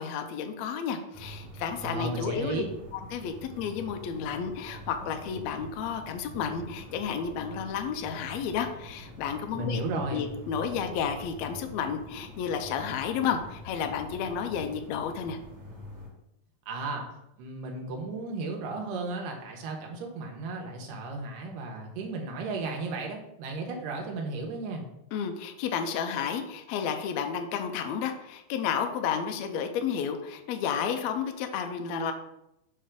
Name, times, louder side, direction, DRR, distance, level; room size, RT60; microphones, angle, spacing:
voice 1, 0.0-2.6 2.9-15.4 25.1-32.1, left 7 dB, 80° left, 6 dB, 1.6 m, -32 dB
sound 1, 1.1-16.1, equal, 40° right, 1.0 m, -45 dB
voice 2, 1.8-2.7 9.5-10.3 16.7-17.0 17.4-24.9, right 2 dB, 90° right, 1 dB, 2.5 m, -34 dB
6.5 x 3.3 x 5.1 m, 0.83 s
omnidirectional pair, 3.7 m